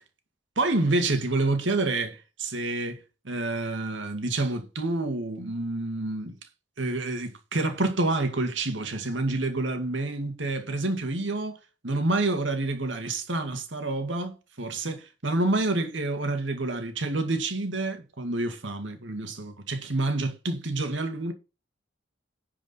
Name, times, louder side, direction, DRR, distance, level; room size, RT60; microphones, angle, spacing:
voice 1, 0.6-6.3 6.8-11.6 11.8-21.3, right 2 dB, 80° right, 2.1 m, -28 dB
10.5 x 4.9 x 5.5 m
head